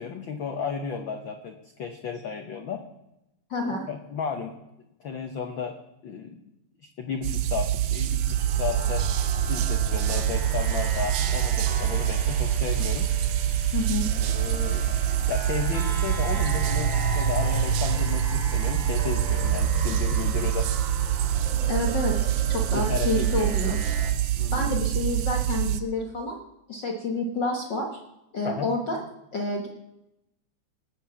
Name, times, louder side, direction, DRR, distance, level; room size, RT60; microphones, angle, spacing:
voice 1, 0.0-2.9 3.6-4.6 5.0-5.8 6.0-6.4 7.0-8.3 8.6-9.1 9.5-13.1 14.2-14.8 15.3-20.7 22.7-23.5 24.4-24.8 28.4-28.7, left 6 dB, 80° left, 6 dB, 1.0 m, -33 dB
voice 2, 3.5-3.8 13.7-14.1 21.7-23.8 24.5-26.4 26.7-28.0 28.3-29.0 29.3-29.7, left 2 dB, 45° left, 2 dB, 1.6 m, -29 dB
sound 1, 7.2-25.8, right 12 dB, 75° right, 1.5 m, -26 dB
sound 2, 8.0-24.1, right 4 dB, 40° right, 2.3 m, -31 dB
18.5 x 7.6 x 7.1 m, 0.89 s
omnidirectional pair, 3.6 m